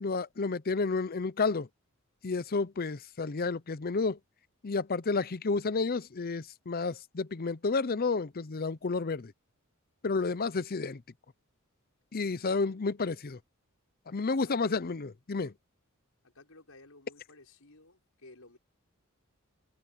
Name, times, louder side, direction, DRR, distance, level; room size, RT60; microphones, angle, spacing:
voice 1, 0.0-1.7 2.2-4.2 4.6-9.3 10.0-11.0 12.1-13.4 14.1-15.5, left 4 dB, 45° left, 0.7 m, -31 dB
voice 2, 12.4-13.0 14.3-14.8 16.2-18.6, left 2 dB, 75° left, 5.7 m, -56 dB
head